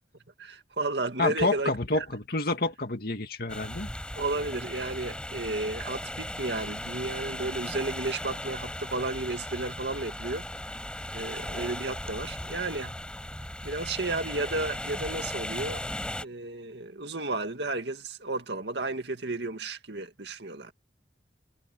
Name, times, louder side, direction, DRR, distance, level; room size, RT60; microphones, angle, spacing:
voice 1, 0.4-2.1 4.1-10.5 11.1-13.0 13.6-15.8 16.2-20.7, right 2 dB, 65° right, 2.2 m, -33 dB
voice 2, 1.2-3.9, left 2 dB, 55° left, 2.3 m, -28 dB
sound 1, 3.5-16.3, left 1 dB, 5° left, 7.9 m, -37 dB
head